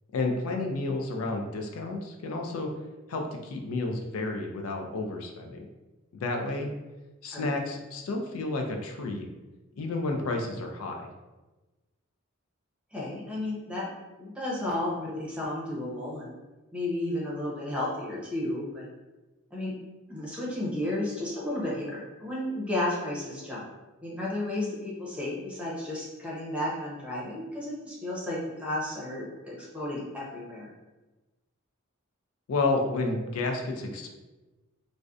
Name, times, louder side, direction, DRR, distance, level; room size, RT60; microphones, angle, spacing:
voice 1, 0.1-2.7 3.1-5.7 6.1-6.7 7.2-9.2 9.8-11.1 32.5-34.1, left 2 dB, 90° left, 3 dB, 0.4 m, -31 dB
voice 2, 12.9-13.9 14.2-16.3 16.7-18.9 19.5-19.7 20.1-23.6 24.0-30.7, left 1 dB, 5° right, -6 dB, 0.6 m, -33 dB
2.5 x 2.1 x 2.3 m, 1.1 s
head